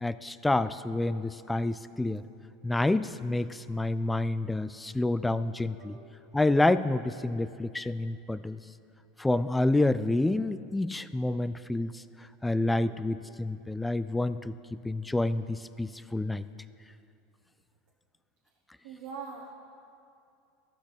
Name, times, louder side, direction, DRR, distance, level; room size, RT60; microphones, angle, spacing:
voice 1, 0.0-2.2 2.6-6.0 6.3-8.6 9.2-12.0 12.4-14.5 14.8-16.4, left 2 dB, 10° left, 15 dB, 0.3 m, -28 dB
voice 2, 5.8-6.2 12.7-13.0 18.8-19.5, right 5 dB, 65° right, -3 dB, 1.2 m, -43 dB
15.0 x 5.9 x 3.4 m, 2.5 s
hypercardioid pair, 80°, 0 cm